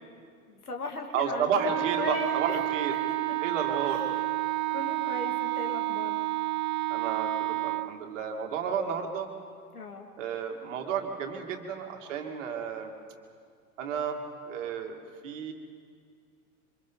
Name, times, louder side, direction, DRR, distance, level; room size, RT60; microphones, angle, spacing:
voice 1, 0.5-2.6 3.8-4.2 4.7-6.3 9.7-10.1, left 3 dB, 75° left, 3 dB, 2.6 m, -38 dB
voice 2, 1.1-2.9 3.4-4.1 6.9-9.3 10.2-12.9 13.8-15.5, right 6 dB, 55° right, 4 dB, 2.4 m, -32 dB
Wind instrument woodwind instrument, 1.6-7.9, right 17 dB, 30° right, 0.6 m, -30 dB
27.5 x 25.0 x 4.0 m, 2.2 s
figure-of-eight pair, 85°, 44 cm